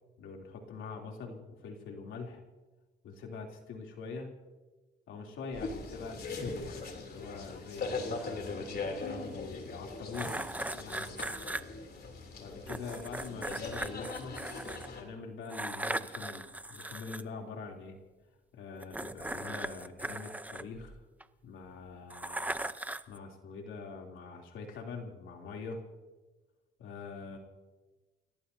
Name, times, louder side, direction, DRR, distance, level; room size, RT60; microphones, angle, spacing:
voice 1, 0.2-2.4 3.0-4.3 5.1-10.4 10.7-11.5 12.4-14.4 15.0-18.0 18.5-21.0 21.4-25.8 26.8-27.4, left 4 dB, 80° left, 1 dB, 3.2 m, -44 dB
sound 1, 5.5-15.0, left 3 dB, 55° left, 3.2 m, -40 dB
sound 2, 10.1-11.6 12.7-14.9 15.5-17.2 18.8-21.2 22.1-23.2, right 1 dB, 10° right, 0.7 m, -38 dB
30.0 x 17.0 x 2.8 m, 1.2 s
cardioid pair, 90°, 20 cm